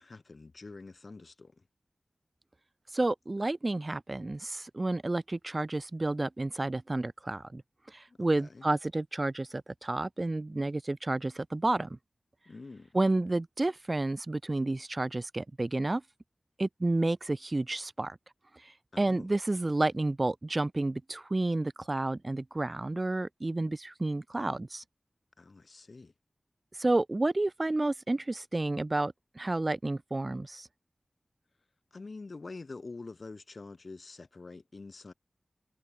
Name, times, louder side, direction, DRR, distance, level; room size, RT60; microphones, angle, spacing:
voice 1, 0.0-1.6 8.1-8.6 12.4-12.9 18.9-19.3 25.4-26.1 31.9-35.1, left 3 dB, 60° left, 1.4 m, -46 dB
voice 2, 2.9-7.6 7.9-12.0 12.9-16.0 16.6-18.2 18.6-24.8 26.8-30.7, right 2 dB, 35° right, 0.6 m, -30 dB
wide cardioid pair, 80°, 0 cm